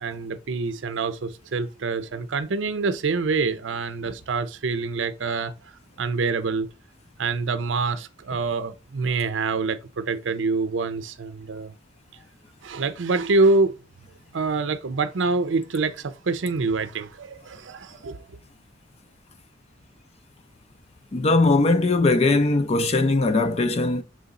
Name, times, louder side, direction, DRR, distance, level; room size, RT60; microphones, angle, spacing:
voice 1, 0.0-5.7 6.0-6.7 7.2-11.7 12.6-13.8 14.3-18.4, right 3 dB, 80° right, 0.6 m, -26 dB
voice 2, 21.1-24.0, left 2 dB, 35° left, 0.4 m, -20 dB
6.2 x 4.0 x 3.7 m
head